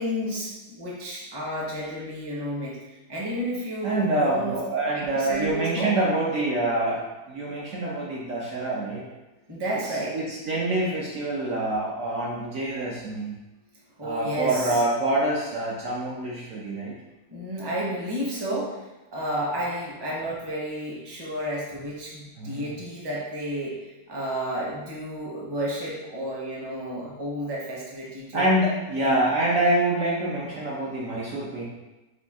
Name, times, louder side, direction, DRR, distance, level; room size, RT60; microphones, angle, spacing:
voice 1, 0.0-4.6 5.1-5.9 9.5-10.2 14.0-14.8 17.3-28.5 29.0-29.1, equal, 25° right, -5 dB, 0.6 m, -31 dB
voice 2, 3.8-7.0 7.3-9.1 9.8-13.4 14.0-17.0 22.4-22.7 28.3-31.6, right 1 dB, 65° right, -4 dB, 0.9 m, -26 dB
5.0 x 2.3 x 3.5 m, 1.1 s
omnidirectional pair, 1.7 m